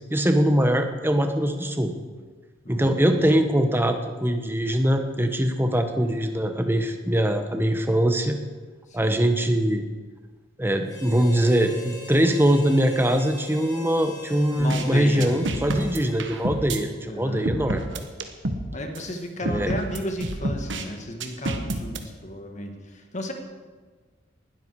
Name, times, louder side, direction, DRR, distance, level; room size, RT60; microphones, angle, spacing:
voice 1, 0.1-1.9 2.7-8.4 8.9-9.8 10.6-17.8 19.4-19.7, equal, 10° right, 6 dB, 1.2 m, -22 dB
voice 2, 2.6-3.2 8.9-9.2 14.6-15.3 17.1-17.5 18.7-23.3, equal, 40° left, 4 dB, 1.9 m, -33 dB
Harmonica, 10.8-16.5, left 3 dB, 20° left, 4.5 m, -42 dB
sound 1, 14.7-14.8 15.2-16.8 17.4-18.6 18.9-19.0 19.4-20.8 21.2-22.0, right 1 dB, 75° right, 1.5 m, -29 dB
19.5 x 13.0 x 4.8 m, 1.4 s
head